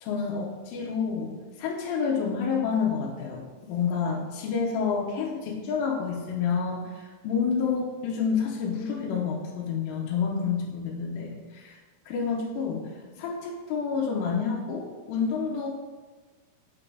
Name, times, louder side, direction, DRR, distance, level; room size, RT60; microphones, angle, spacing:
voice 1, 0.0-1.3 1.6-11.8 12.1-12.9 13.2-15.7, left 6 dB, 75° left, -2 dB, 2.4 m, -29 dB
8.3 x 3.8 x 3.3 m, 1.3 s
omnidirectional pair, 4.5 m